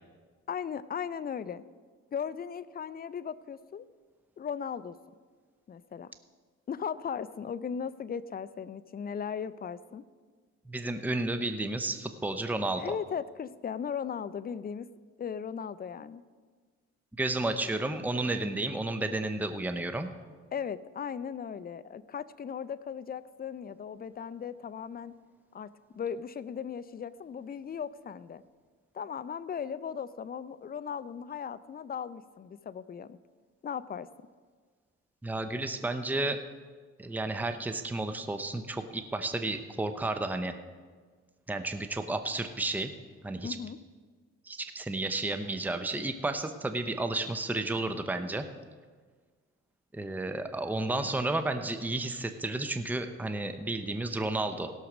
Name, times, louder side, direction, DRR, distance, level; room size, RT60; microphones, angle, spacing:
voice 1, 0.5-1.6 2.1-3.8 4.4-5.0 5.7-6.1 6.7-10.0 12.8-14.9 15.2-16.2 20.5-25.1 25.5-28.4 28.9-33.2 33.6-34.1 43.4-43.8, left 7 dB, 30° left, 15 dB, 0.5 m, -37 dB
voice 2, 10.7-12.8 17.2-20.1 35.2-36.4 37.0-40.6 41.5-42.9 43.2-43.6 44.5-48.4 49.9-54.7, right 2 dB, 5° right, 8 dB, 0.7 m, -32 dB
16.5 x 6.4 x 6.1 m, 1.5 s
cardioid pair, 90°, 30 cm